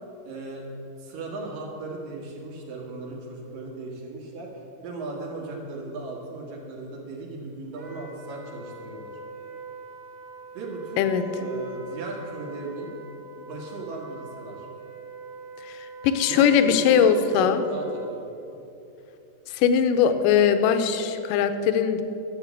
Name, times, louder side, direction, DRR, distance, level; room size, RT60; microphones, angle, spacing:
voice 1, 0.3-0.7 1.0-4.5 4.8-9.1 10.5-12.9 13.4-14.7 16.2-18.6, right 3 dB, 75° right, -1 dB, 3.5 m, -37 dB
Wind instrument woodwind instrument, 7.7-18.1, right 3 dB, 55° right, 3.0 m, -43 dB
voice 2, 16.0-17.6 19.5-22.0, left 7 dB, 75° left, 9 dB, 2.3 m, -20 dB
11.5 x 7.3 x 8.2 m, 2.9 s
omnidirectional pair, 4.0 m